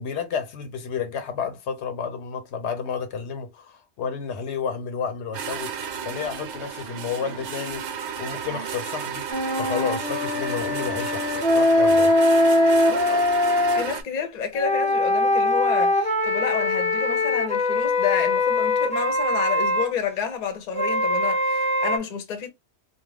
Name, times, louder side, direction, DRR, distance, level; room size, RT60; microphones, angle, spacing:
voice 1, 0.0-5.8 6.0-12.1, left 6 dB, 80° left, 0.9 m, -31 dB
sound 1, 5.3-14.0, right 7 dB, 85° right, 1.0 m, -33 dB
sound 2, 9.3-13.8 14.6-19.9 20.7-22.0, left 2 dB, 10° left, 0.4 m, -22 dB
voice 2, 12.9-13.3 13.7-22.5, left 7 dB, 45° left, 0.7 m, -30 dB
2.4 x 2.1 x 3.2 m
omnidirectional pair, 1.2 m